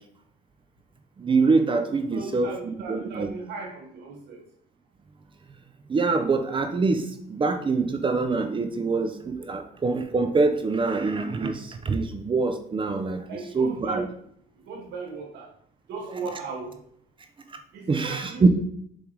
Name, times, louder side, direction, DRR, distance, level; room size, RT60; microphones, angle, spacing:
voice 1, 1.2-3.3 5.9-13.3 13.5-14.0 17.9-18.5, right 4 dB, 30° right, 7 dB, 0.7 m, -24 dB
voice 2, 2.1-4.4 13.3-14.1 14.6-15.5 15.9-16.8 17.7-18.5, right 4 dB, 80° right, 0 dB, 1.9 m, -36 dB
7.2 x 3.6 x 4.7 m, 0.66 s
cardioid pair, 110°, 17 cm